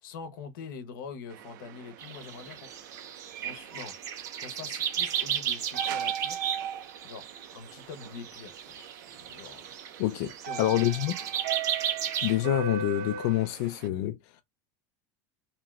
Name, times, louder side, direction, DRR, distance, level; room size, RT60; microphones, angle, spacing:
voice 1, 0.0-2.7 3.4-4.0 4.4-6.4 7.0-7.3 7.5-8.8 9.1-9.7 10.4-10.8, left 6 dB, 85° left, 0.8 m, -44 dB
sound 1, 1.3-13.9, right 7 dB, 75° right, 0.6 m, -39 dB
sound 2, 2.0-12.4, right 9 dB, 35° right, 0.7 m, -34 dB
voice 2, 10.0-11.1 12.2-14.2, left 14 dB, 55° left, 0.4 m, -27 dB
3.1 x 2.8 x 2.3 m
supercardioid pair, 165°, 10 cm